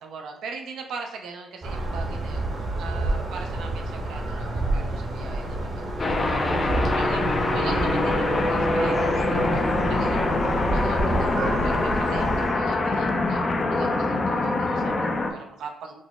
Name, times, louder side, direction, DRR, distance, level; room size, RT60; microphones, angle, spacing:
voice 1, 0.0-13.4 13.7-16.0, right 4 dB, 80° right, 2 dB, 0.5 m, -41 dB
sound 1, 1.6-12.5, right 2 dB, 50° right, 0.9 m, -28 dB
sound 2, 6.0-15.3, left 2 dB, 35° left, 0.4 m, -24 dB
3.9 x 2.0 x 3.5 m, 0.78 s
cardioid pair, 90°, 0 cm